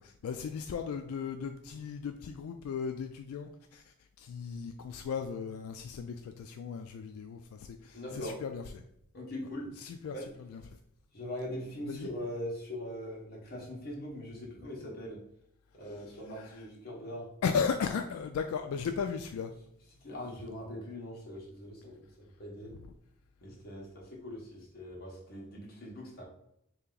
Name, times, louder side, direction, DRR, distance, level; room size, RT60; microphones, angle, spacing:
voice 1, 0.0-8.8 9.8-10.6 11.9-12.1 15.8-15.9 16.3-16.7 17.4-19.5 22.8-22.9, left 6 dB, 80° left, 7 dB, 0.3 m, -36 dB
voice 2, 7.9-8.4 9.1-9.7 10.1-10.3 11.1-15.2 15.7-17.3 20.0-22.7 23.4-26.2, left 1 dB, 45° left, -3 dB, 1.2 m, -41 dB
3.3 x 2.9 x 3.8 m, 0.76 s
head